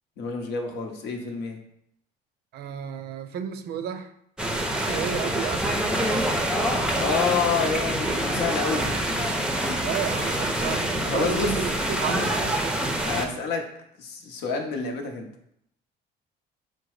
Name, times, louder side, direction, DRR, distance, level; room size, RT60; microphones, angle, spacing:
voice 1, 0.2-1.6 7.0-8.9 11.1-11.5 13.0-13.6 14.0-15.3, left 5 dB, 85° left, 3 dB, 0.8 m, -28 dB
voice 2, 2.5-4.1 4.8-5.8 9.8-12.6, right 8 dB, 70° right, 9 dB, 0.5 m, -32 dB
sound 1, 4.4-13.3, right 1 dB, 5° right, 0.5 m, -26 dB
5.1 x 2.1 x 4.7 m, 0.74 s
cardioid pair, 110°, 17 cm